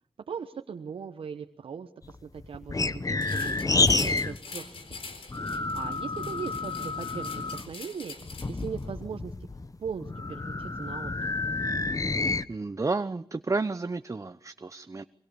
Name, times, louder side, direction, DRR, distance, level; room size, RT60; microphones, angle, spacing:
voice 1, 0.3-5.0 5.3-5.5 5.7-9.3 9.8-11.3, right 6 dB, 80° right, 5 dB, 1.1 m, -39 dB
sound 1, 2.0-4.4 4.6-7.7 8.2-12.4, left 3 dB, 40° left, 1.1 m, -29 dB
sound 2, 3.2-8.8, left 4 dB, 80° left, 3.9 m, -44 dB
voice 2, 12.5-15.0, right 3 dB, 35° right, 12 dB, 0.8 m, -31 dB
24.0 x 21.5 x 7.0 m, 0.75 s
cardioid pair, 45°, 9 cm